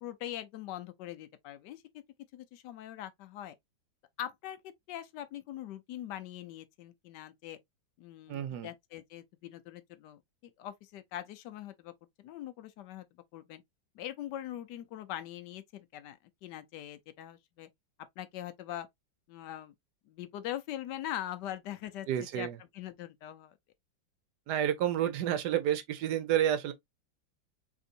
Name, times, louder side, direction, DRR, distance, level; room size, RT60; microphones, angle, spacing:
voice 1, 0.0-2.0 2.3-3.5 4.2-4.6 4.9-7.6 8.0-11.9 12.2-13.0 13.3-13.6 13.9-17.7 18.2-18.9 19.3-19.7 20.1-22.1 22.3-22.5 22.7-23.5, left 12 dB, 70° left, 1.2 m, -42 dB
voice 2, 8.3-8.7 22.1-22.6 24.5-26.7, right 10 dB, 65° right, 1.2 m, -30 dB
3.9 x 3.5 x 2.4 m
omnidirectional pair, 2.1 m